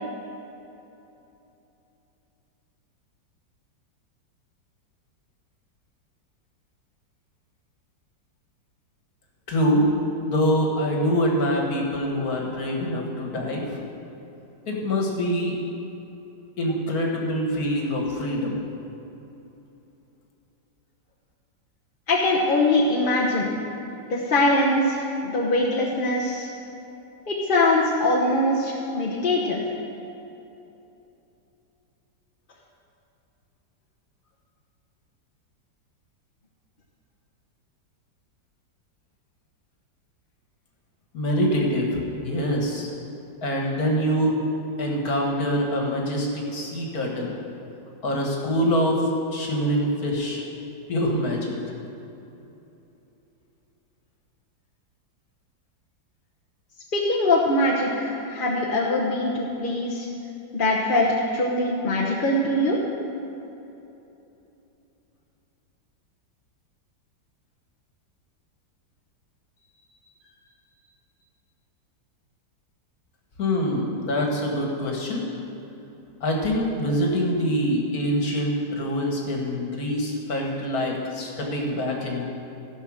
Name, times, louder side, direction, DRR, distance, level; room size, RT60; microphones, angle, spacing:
voice 1, 9.5-9.9 10.2-13.6 14.7-15.6 16.6-18.6 41.1-42.9 43.4-44.4 44.8-47.3 48.0-49.0 49.3-50.4 50.9-51.5 73.4-75.3 76.2-82.3, equal, 55° left, 0 dB, 2.0 m, -25 dB
voice 2, 22.1-23.5 24.1-26.5 27.3-29.6 56.9-60.1 60.5-62.8, left 2 dB, 35° left, -4 dB, 0.9 m, -22 dB
15.5 x 5.6 x 6.3 m, 2.9 s
omnidirectional pair, 1.9 m